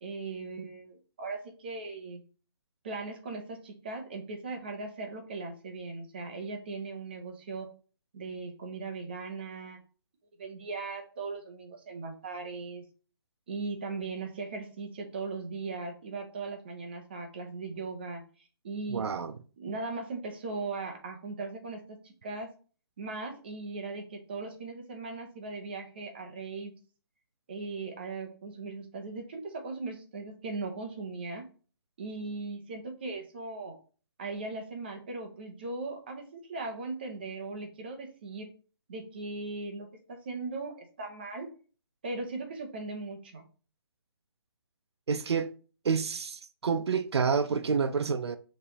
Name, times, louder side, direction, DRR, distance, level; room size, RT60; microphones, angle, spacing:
voice 1, 0.0-2.2 2.8-7.7 8.1-9.8 10.4-12.8 13.5-18.2 18.6-19.1 19.6-22.5 23.0-26.7 27.5-31.5 32.0-33.8 34.2-38.5 38.9-41.5 42.0-43.4, right 3 dB, 25° right, 0.7 m, -38 dB
voice 2, 18.9-19.4 45.1-45.5 45.8-48.4, right 5 dB, 85° right, 0.5 m, -28 dB
5.2 x 3.1 x 2.9 m
hypercardioid pair, 175°, 13 cm